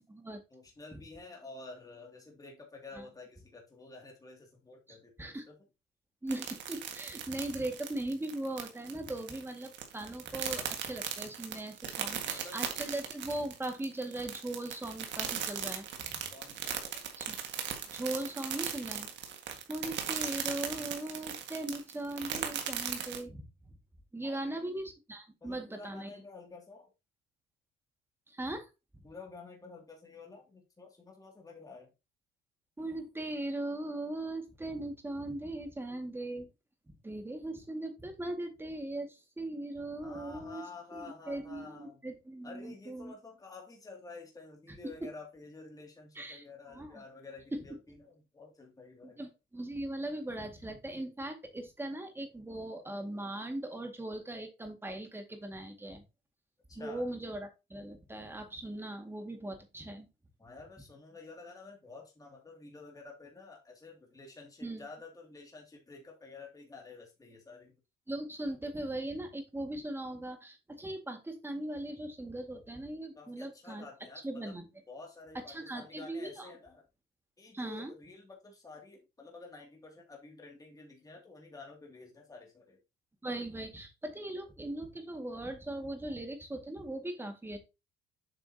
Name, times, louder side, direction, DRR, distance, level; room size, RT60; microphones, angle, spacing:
voice 1, 0.5-5.6 12.0-13.0 16.3-17.0 24.2-24.7 25.4-26.9 29.0-31.9 40.0-42.0 42.4-49.3 56.7-57.1 60.4-67.7 73.1-74.5 74.9-76.8 77.4-82.8, left 3 dB, 20° left, 0 dB, 2.4 m, -50 dB
voice 2, 4.9-5.5 6.2-16.1 17.2-17.4 17.9-19.1 19.7-23.4 24.1-26.1 28.3-29.1 32.8-36.5 37.0-40.6 40.9-43.1 44.8-44.9 46.2-47.0 47.5-47.6 49.0-56.0 56.8-60.1 64.6-64.8 68.1-73.9 74.2-74.6 75.5-76.5 77.5-77.9 83.2-87.6, right 1 dB, 10° right, 5 dB, 1.9 m, -39 dB
sound 1, 6.3-23.2, right 9 dB, 65° right, 1.8 m, -38 dB
8.1 x 5.7 x 2.8 m, 0.26 s
cardioid pair, 95°, 20 cm